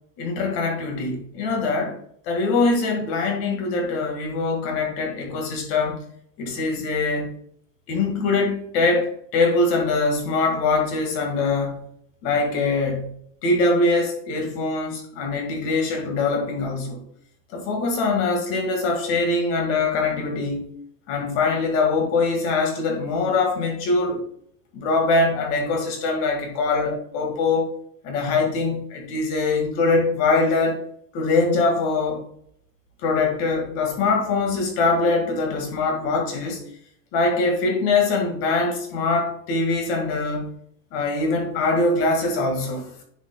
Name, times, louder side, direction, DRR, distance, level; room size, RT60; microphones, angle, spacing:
voice 1, 0.2-2.0 2.3-6.0 6.4-7.3 7.9-11.8 12.2-13.1 13.4-17.0 17.5-20.6 21.1-24.2 24.7-27.7 28.0-30.8 31.1-32.2 33.0-36.6 37.1-40.5 40.9-42.9, left 3 dB, 40° left, 3 dB, 1.9 m, -23 dB
10.5 x 5.3 x 2.3 m, 0.66 s
supercardioid pair, 170°, 41 cm